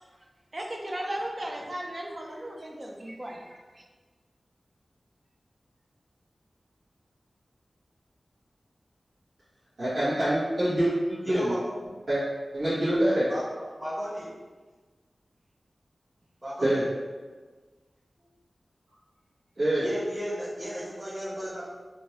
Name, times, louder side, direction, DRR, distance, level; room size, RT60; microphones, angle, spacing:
voice 1, 0.5-3.6, right 1 dB, 40° right, 0 dB, 0.6 m, -36 dB
voice 2, 9.8-11.5 12.1-12.2 12.5-13.3 16.6-16.8 19.6-19.8, right 1 dB, 70° right, -13 dB, 1.4 m, -25 dB
voice 3, 11.2-11.9 13.3-13.4 13.8-14.3 16.4-16.8 19.8-21.6, equal, 20° right, -12 dB, 1.3 m, -34 dB
3.5 x 2.7 x 2.9 m, 1.4 s
wide cardioid pair, 60°, 0 cm